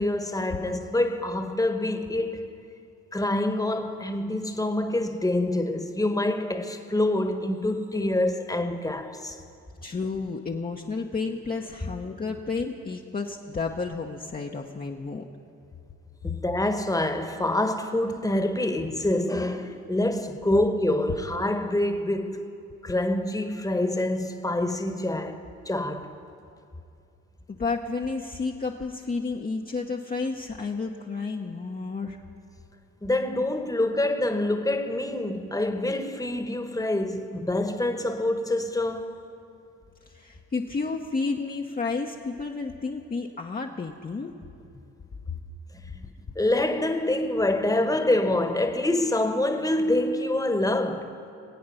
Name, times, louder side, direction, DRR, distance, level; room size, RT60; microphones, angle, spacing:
voice 1, 0.0-2.6 3.1-9.4 16.2-22.5 22.8-26.1 33.0-39.2 45.9-46.1 46.3-51.1, left 1 dB, 10° left, 1.3 m, -26 dB
voice 2, 9.8-15.2 27.5-32.2 40.1-44.3, left 4 dB, 25° left, 0.9 m, -31 dB
22.0 x 8.5 x 5.6 m
hypercardioid pair, 50°, 34 cm